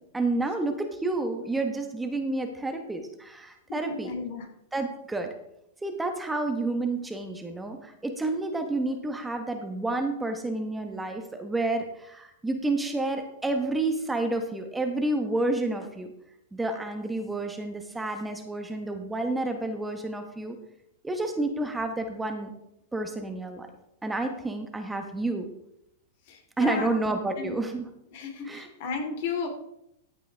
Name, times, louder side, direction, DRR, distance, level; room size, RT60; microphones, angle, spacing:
voice 1, 0.1-4.1 4.7-5.3 5.8-16.1 16.5-20.6 21.0-22.5 22.9-23.7 24.0-25.5 26.6-27.8 28.4-28.7, right 2 dB, 10° right, 5 dB, 1.4 m, -30 dB
voice 2, 3.8-4.5 26.3-26.9 27.4-27.5 28.1-29.5, left 4 dB, 60° left, 4 dB, 2.8 m, -33 dB
14.0 x 8.4 x 3.6 m, 0.80 s
hypercardioid pair, 115°, 0 cm